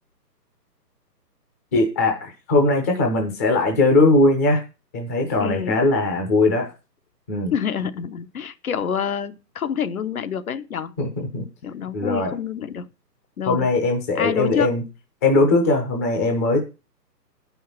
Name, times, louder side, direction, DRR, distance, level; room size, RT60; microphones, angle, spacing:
voice 1, 1.7-4.6 4.9-6.7 7.3-7.5 11.0-11.4 11.9-12.3 13.5-14.8 15.2-16.6, left 2 dB, 10° left, 0.7 m, -20 dB
voice 2, 5.4-5.8 7.5-10.9 11.6-12.9 13.4-13.7 14.1-14.7, left 7 dB, 60° left, 1.0 m, -27 dB
9.4 x 5.6 x 6.0 m
hypercardioid pair, 145°, 49 cm